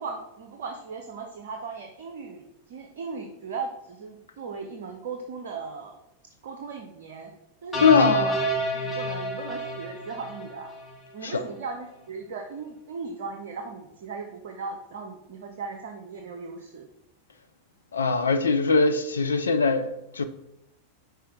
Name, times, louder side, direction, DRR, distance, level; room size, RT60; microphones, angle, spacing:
voice 1, 0.0-6.0 6.4-7.3 7.6-10.7 11.1-16.9, right 4 dB, 55° right, 0.7 m, -37 dB
sound 1, 7.7-11.0, right 1 dB, 5° left, 1.9 m, -29 dB
voice 2, 7.8-8.3 11.2-11.4 17.9-20.2, left 4 dB, 70° left, 0.4 m, -21 dB
5.7 x 4.3 x 4.7 m
figure-of-eight pair, 90°, 0 cm